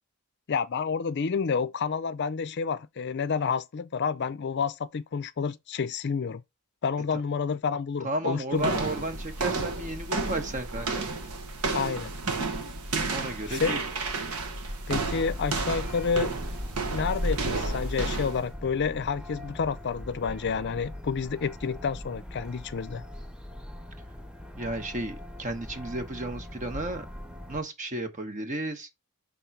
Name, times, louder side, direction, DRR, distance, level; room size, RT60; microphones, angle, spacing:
voice 1, 0.5-6.4 6.8-8.8 11.7-12.1 13.5-13.8 14.9-16.3 16.8-23.0, left 5 dB, 50° left, 0.5 m, -29 dB
voice 2, 8.0-11.1 13.1-13.8 24.6-27.1 27.5-28.9, right 1 dB, 35° right, 1.0 m, -33 dB
sound 1, 8.6-18.5, right 3 dB, 90° right, 1.4 m, -31 dB
sound 2, 15.0-27.6, left 1 dB, 5° right, 0.6 m, -41 dB
5.2 x 3.8 x 5.8 m
head